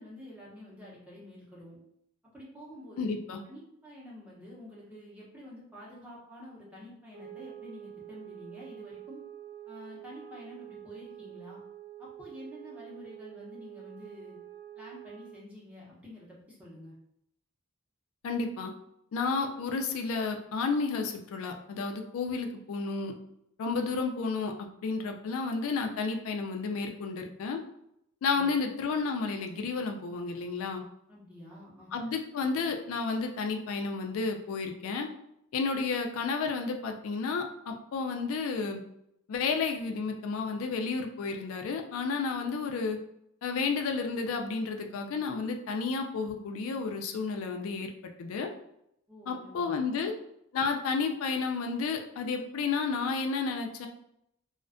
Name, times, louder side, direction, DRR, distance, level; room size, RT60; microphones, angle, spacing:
voice 1, 0.0-1.8 2.3-3.1 3.4-9.2 9.7-11.6 12.0-14.4 14.7-16.9 28.3-28.8 31.1-31.9 49.1-49.8, left 1 dB, 5° right, -6 dB, 0.6 m, -48 dB
voice 2, 3.0-3.4 18.2-18.7 19.1-23.1 23.6-27.6 28.2-30.8 31.9-35.1 35.5-38.8 39.3-43.0 43.4-47.9 48.2-48.5 49.3-50.1 50.5-53.9, left 4 dB, 70° left, 4 dB, 0.3 m, -31 dB
sound 1, 7.1-15.5, right 11 dB, 45° right, 0.3 m, -47 dB
2.4 x 2.2 x 2.4 m, 0.77 s
head